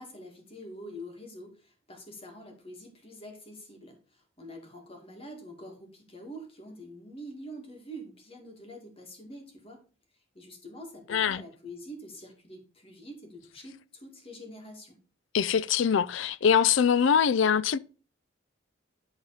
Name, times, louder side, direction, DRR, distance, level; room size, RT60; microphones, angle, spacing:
voice 1, 0.0-9.8 10.3-15.0, equal, 30° left, 2.2 m, -46 dB
voice 2, 11.1-11.4 15.3-17.8, left 7 dB, 75° left, 0.4 m, -23 dB
11.0 x 4.1 x 4.9 m
head